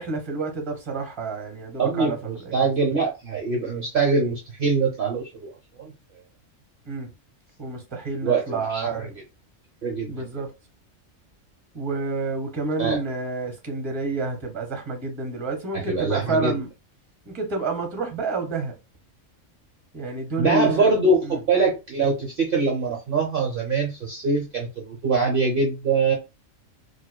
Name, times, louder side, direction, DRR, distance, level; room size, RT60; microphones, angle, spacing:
voice 1, 0.0-2.7 6.9-7.1 7.6-9.1 10.1-10.5 11.7-16.7 17.2-18.7 19.9-20.9 21.2-21.4, right 3 dB, 25° right, 1.0 m, -29 dB
voice 2, 1.8-5.9 8.2-9.1 9.8-10.3 12.8-13.0 15.7-16.6 20.4-26.1, right 4 dB, 50° right, 0.8 m, -23 dB
4.7 x 2.3 x 2.2 m
omnidirectional pair, 1.4 m